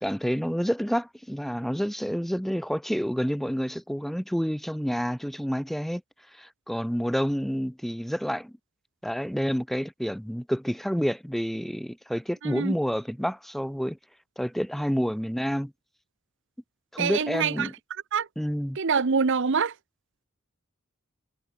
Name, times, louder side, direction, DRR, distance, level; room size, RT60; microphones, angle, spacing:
voice 1, 0.0-6.0 6.4-8.5 9.0-14.0 14.4-15.7 16.9-17.7 18.4-18.8, equal, ahead, 1.6 m, -29 dB
voice 2, 12.4-12.7 17.0-17.7 18.1-18.3 18.8-19.7, right 5 dB, 60° right, 0.8 m, -25 dB
head